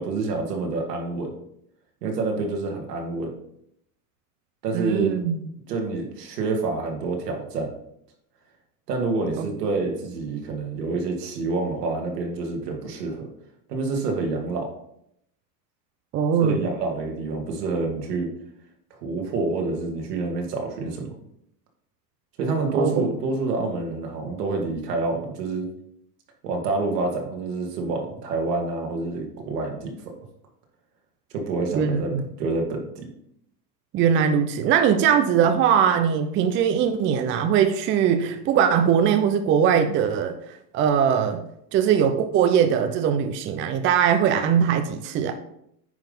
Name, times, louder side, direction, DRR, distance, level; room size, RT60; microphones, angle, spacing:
voice 1, 0.0-1.3 2.0-3.3 4.6-5.2 5.7-7.7 8.9-13.3 13.7-14.7 16.4-18.3 18.9-21.1 22.4-25.7 26.4-29.9 31.3-33.0, right 3 dB, 75° right, 1 dB, 2.3 m, -27 dB
voice 2, 4.7-5.4 9.4-9.5 16.1-16.6 22.7-22.9 31.7-32.3 33.9-40.3 40.7-41.4 41.7-45.3, right 8 dB, 25° right, 8 dB, 0.5 m, -21 dB
9.3 x 3.7 x 5.4 m, 0.74 s
hypercardioid pair, 110°, 49 cm